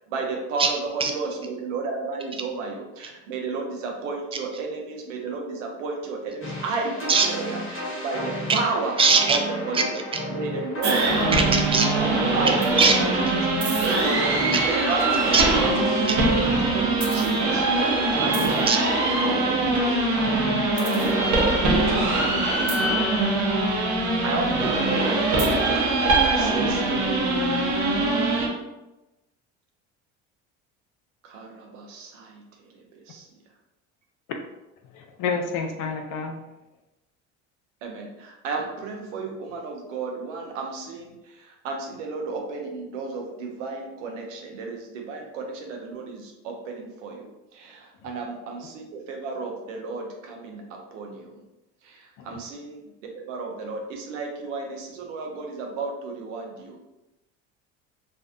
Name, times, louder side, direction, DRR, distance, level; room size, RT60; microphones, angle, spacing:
voice 1, 0.1-9.0 9.3-13.3 13.5-16.4 16.7-17.7 18.1-18.8 19.2-19.9 23.2-23.4 23.9-27.0 31.2-33.3 37.8-51.4 51.8-56.9, right 4 dB, 85° right, 1 dB, 0.6 m, -33 dB
sound 1, 6.4-22.3, left 1 dB, 35° left, 1.0 m, -33 dB
voice 2, 9.0-9.4 9.7-9.8 11.3-11.9 12.8-12.9 15.3-15.4 18.7-18.8 20.7-21.5, right 5 dB, 15° right, 3 dB, 0.3 m, -22 dB
sound 2, 10.8-28.5, right 2 dB, 50° right, 0.8 m, -22 dB
voice 3, 34.9-36.4 52.2-52.4, left 5 dB, 60° left, 4 dB, 0.5 m, -29 dB
2.5 x 2.1 x 2.5 m, 0.99 s
hypercardioid pair, 75°, 36 cm